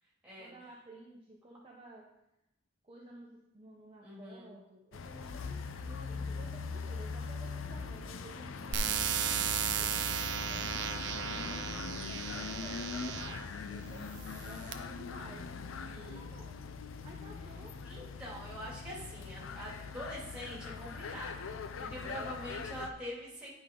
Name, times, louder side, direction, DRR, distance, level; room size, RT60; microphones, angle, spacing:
voice 1, 0.4-2.1 2.8-9.2 9.7-11.7 12.3-15.5 16.0-16.6 17.0-17.8, right 2 dB, 30° right, -3 dB, 0.8 m, -53 dB
voice 2, 4.0-4.5 9.6-10.0 15.8-16.2 17.8-23.5, equal, 5° right, -6 dB, 2.6 m, -45 dB
sound 1, 4.9-22.9, left 5 dB, 90° left, 0.5 m, -41 dB
sound 2, 8.7-13.5 14.2-14.7, right 8 dB, 65° right, 0.6 m, -35 dB
10.0 x 5.0 x 3.7 m, 0.88 s
head